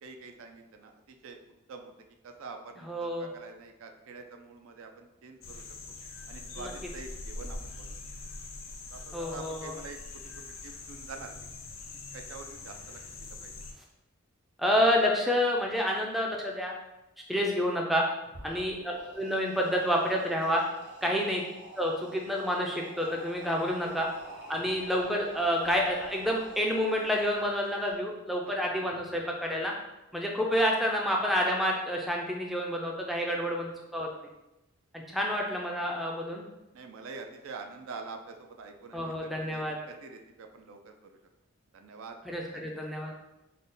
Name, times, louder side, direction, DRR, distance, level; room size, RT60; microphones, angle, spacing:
voice 1, 0.0-1.4 1.7-1.9 2.2-5.6 6.3-8.0 8.9-10.0 10.3-11.3 12.1-13.5 18.5-18.6 21.0-21.2 23.8-23.9 28.5-28.6 33.3-33.5 36.7-41.2 41.7-42.2 42.5-42.9, right 4 dB, 70° right, 5 dB, 0.4 m, -46 dB
voice 2, 2.8-3.3 6.6-6.7 9.1-9.8 14.6-16.7 17.3-18.0 18.4-20.6 21.0-21.4 21.8-24.1 24.5-29.7 30.1-34.1 35.1-36.4 38.9-39.8 42.3-43.1, equal, ahead, -1 dB, 0.3 m, -29 dB
sound 1, 5.4-13.7, left 3 dB, 65° left, 0.5 m, -43 dB
sound 2, 18.2-27.9, right 2 dB, 50° right, 0.9 m, -48 dB
3.8 x 2.1 x 3.7 m, 0.95 s
head